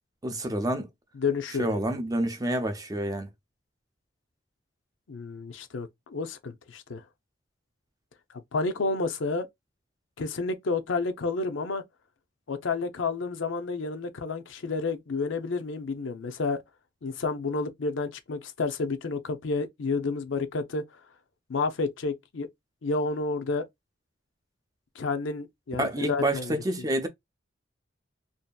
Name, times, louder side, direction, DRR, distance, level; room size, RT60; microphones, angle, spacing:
voice 1, 0.2-0.9 1.6-3.3 25.8-27.1, right 1 dB, 20° right, 0.4 m, -28 dB
voice 2, 1.2-1.8 5.1-7.0 8.5-9.5 10.2-11.8 12.5-16.6 17.0-20.8 21.5-22.5 22.8-23.6 25.0-26.6, left 3 dB, 80° left, 0.6 m, -30 dB
2.7 x 2.5 x 2.2 m
head